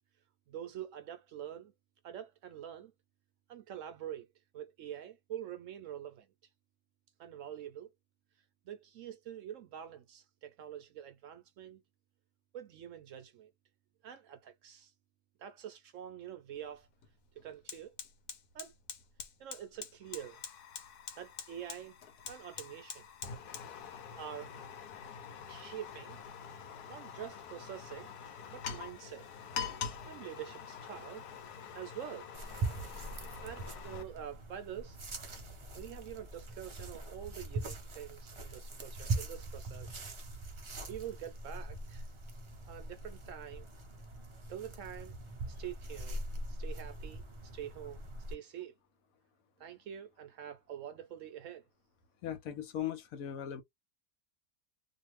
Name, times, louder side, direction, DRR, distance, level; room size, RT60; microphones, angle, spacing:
voice 1, 0.5-1.7 2.0-2.9 3.5-4.3 4.5-6.3 7.2-7.9 8.6-11.8 12.5-13.5 14.0-14.9 15.4-16.9 17.4-18.0 18.5-18.7 19.4-20.4 21.2-21.9 22.3-23.1 24.2-24.5 25.5-26.2 26.5-26.6 26.9-28.1 28.5-29.3 30.0-31.3 31.7-32.3 33.1-35.0 35.7-40.0 40.8-42.1 42.7-43.7 44.5-45.1 45.4-46.2 46.5-48.0 48.3-48.7 49.6-51.6, right 10 dB, 70° right, 0.8 m, -46 dB
Fire, 16.6-16.7 17.0-34.0, left 7 dB, 85° left, 1.2 m, -45 dB
sound 1, 32.3-48.3, right 2 dB, 55° right, 0.3 m, -42 dB
voice 2, 52.2-53.6, left 10 dB, 70° left, 1.0 m, -38 dB
2.7 x 2.5 x 3.0 m
omnidirectional pair, 1.6 m